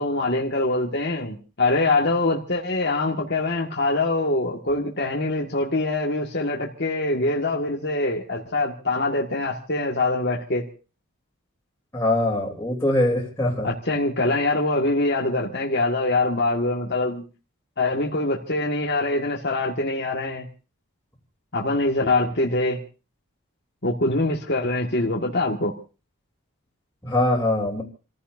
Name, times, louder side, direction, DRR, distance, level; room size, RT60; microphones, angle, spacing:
voice 1, 0.0-10.7 13.6-17.2 17.8-20.5 21.5-22.8 23.8-25.7, left 2 dB, 50° left, -1 dB, 1.8 m, -24 dB
voice 2, 11.9-13.7 27.0-27.8, left 1 dB, 10° left, -4 dB, 3.4 m, -22 dB
29.5 x 15.0 x 2.7 m, 0.35 s
head